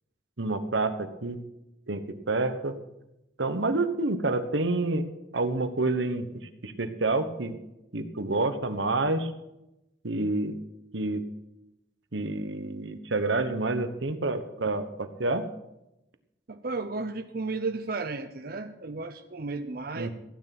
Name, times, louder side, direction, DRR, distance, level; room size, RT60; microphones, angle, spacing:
voice 1, 0.4-1.4 1.9-2.7 3.4-5.1 5.3-6.3 6.6-7.6 7.9-9.3 10.0-10.6 10.9-11.2 12.1-15.5 19.9-20.1, right 2 dB, 75° right, 9 dB, 1.2 m, -28 dB
voice 2, 16.5-20.1, right 3 dB, 50° right, 7 dB, 0.7 m, -33 dB
16.0 x 9.3 x 6.0 m, 0.90 s
head